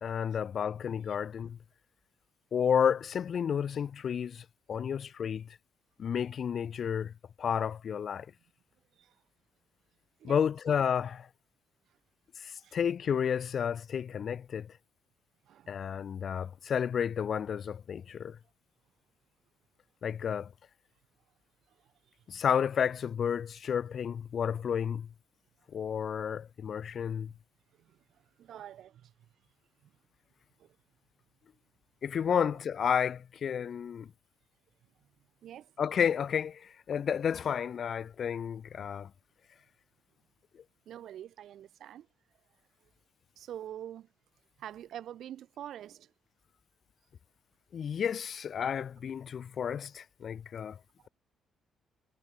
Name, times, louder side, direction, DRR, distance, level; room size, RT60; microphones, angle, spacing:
voice 1, 0.0-1.6 2.5-5.5 6.0-7.1 7.4-8.3 10.2-11.3 12.4-14.7 15.7-18.4 20.0-20.5 22.3-25.1 25.7-27.3 32.0-34.1 35.8-39.1 47.7-50.8, left 8 dB, 55° left, 0.5 m, -31 dB
voice 2, 8.9-9.2 10.2-10.4 11.9-12.0 12.6-12.8 15.4-15.8 21.7-22.3 27.2-27.4 27.7-29.3 29.8-30.0 30.6-30.8 32.2-32.5 35.0-35.1 35.4-35.8 40.9-42.1 42.8-42.9 43.4-44.1 44.6-46.1 51.0-51.1, right 11 dB, 70° right, 7.0 m, -47 dB
cardioid pair, 90°, 0 cm